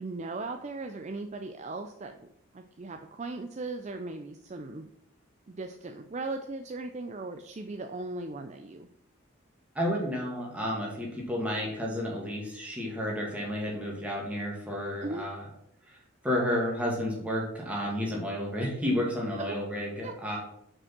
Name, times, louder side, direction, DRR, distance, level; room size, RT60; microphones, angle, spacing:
voice 1, 0.0-2.2 2.5-4.9 5.5-8.9 15.0-15.2 19.4-19.6 20.0-20.2, right 3 dB, 35° right, 6 dB, 0.4 m, -38 dB
voice 2, 9.7-15.5 15.9-16.0 16.2-20.4, left 1 dB, 5° right, -3 dB, 2.0 m, -31 dB
6.2 x 5.1 x 6.0 m, 0.76 s
head